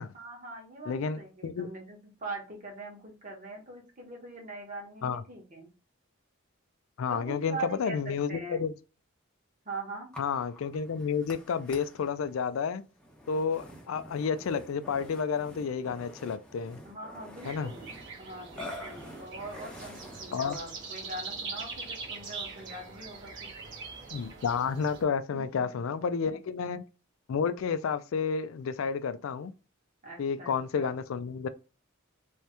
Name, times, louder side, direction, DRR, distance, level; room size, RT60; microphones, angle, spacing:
voice 1, 0.1-5.7 7.1-8.0 8.3-8.6 9.6-10.1 16.8-17.9 18.2-23.5 25.3-25.4 26.2-26.4 30.0-30.9, right 2 dB, 40° right, 1.2 m, -42 dB
voice 2, 0.9-1.7 5.0-5.2 7.0-8.7 10.2-12.8 13.3-16.8 17.4-17.7 20.3-20.6 24.1-26.8 27.3-29.5 30.2-31.5, left 6 dB, 75° left, 0.4 m, -31 dB
Burping eructation, 10.1-20.8, left 1 dB, 5° left, 0.8 m, -48 dB
sound 1, 17.4-25.0, right 4 dB, 60° right, 1.3 m, -42 dB
3.5 x 2.9 x 3.3 m
head